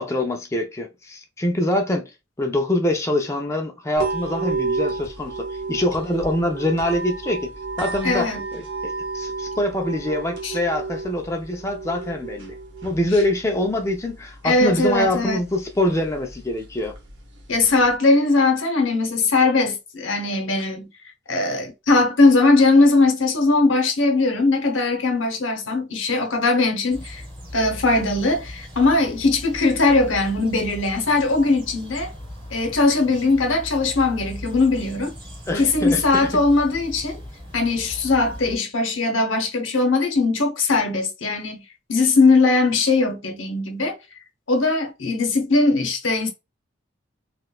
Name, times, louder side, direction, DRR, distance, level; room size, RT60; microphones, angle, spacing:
voice 1, 0.0-2.1 2.4-7.5 7.8-12.6 12.8-17.0 35.5-36.3, left 1 dB, 15° left, 0.4 m, -24 dB
sound 1, 4.0-18.0, right 3 dB, 65° right, 1.0 m, -32 dB
voice 2, 8.0-8.4 10.4-10.6 14.4-15.4 17.5-20.9 21.3-27.2 27.5-32.1 32.5-35.1 35.6-37.2 37.5-41.6 41.9-44.0 44.5-46.3, left 3 dB, 85° left, 0.9 m, -20 dB
sound 2, 26.9-38.6, left 1 dB, 25° right, 1.4 m, -38 dB
3.7 x 2.4 x 2.3 m
head